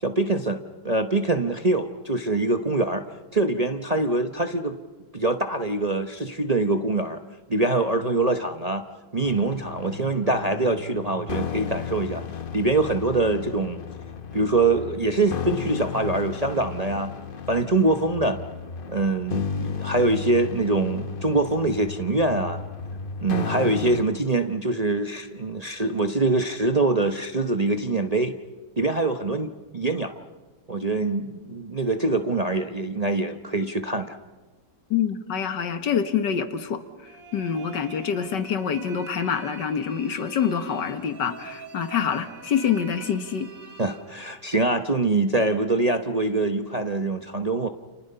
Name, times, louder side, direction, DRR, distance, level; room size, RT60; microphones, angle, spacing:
voice 1, 0.0-3.1 3.3-4.8 5.1-7.2 7.5-8.8 9.1-12.2 12.5-13.8 14.3-17.1 17.5-18.4 18.9-22.6 23.2-28.4 28.8-30.2 30.7-34.2 43.8-47.7, right 2 dB, 30° right, 6 dB, 0.8 m, -24 dB
sound 1, 9.2-24.0, left 5 dB, 40° left, 0.9 m, -34 dB
voice 2, 34.9-43.5, left 7 dB, 80° left, 9 dB, 2.0 m, -26 dB
sound 2, 37.1-44.8, right 5 dB, 55° right, 1.8 m, -45 dB
30.0 x 29.0 x 5.6 m, 1.2 s
omnidirectional pair, 1.9 m